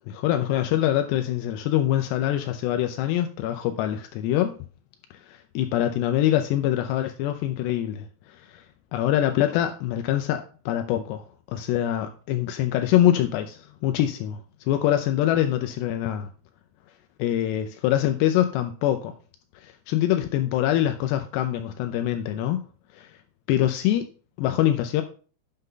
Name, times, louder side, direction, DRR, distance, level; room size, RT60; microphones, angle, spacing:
voice 1, 0.1-4.5 5.3-8.1 8.5-8.6 8.9-11.2 11.5-14.4 14.7-16.3 17.2-19.1 19.6-22.6 23.0-23.1 23.5-24.0 24.4-25.0, left 12 dB, 80° left, 6 dB, 2.8 m, -24 dB
9.5 x 6.7 x 3.8 m, 0.39 s
omnidirectional pair, 4.9 m